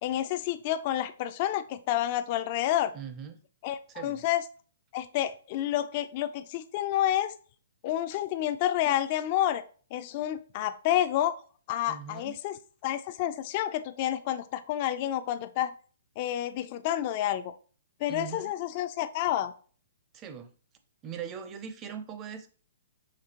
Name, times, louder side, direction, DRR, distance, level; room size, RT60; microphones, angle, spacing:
voice 1, 0.0-2.9 3.6-4.4 4.9-7.4 7.8-9.6 9.9-11.4 11.7-12.6 12.8-15.7 16.2-17.5 18.0-19.5, left 12 dB, 40° left, 0.3 m, -29 dB
voice 2, 2.9-3.4 3.9-4.3 11.9-12.3 18.1-18.5 20.1-20.5 21.0-22.5, right 8 dB, 25° right, 0.6 m, -40 dB
5.1 x 3.5 x 2.9 m
hypercardioid pair, 140°, 0 cm